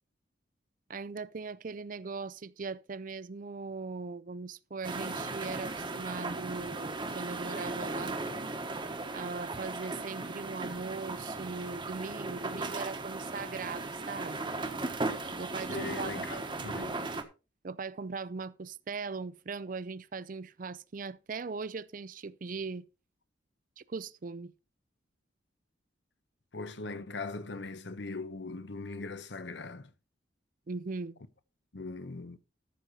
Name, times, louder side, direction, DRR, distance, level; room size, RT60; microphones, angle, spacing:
voice 1, 0.9-8.2 9.1-14.5 15.4-16.5 17.6-22.9 23.8-24.5 30.7-31.2, right 4 dB, 45° right, 0.5 m, -39 dB
sound 1, 4.8-17.2, right 2 dB, 25° right, 1.2 m, -37 dB
voice 2, 15.7-17.0 26.5-29.9 31.7-32.4, left 3 dB, 65° left, 0.9 m, -40 dB
13.5 x 6.4 x 4.1 m
head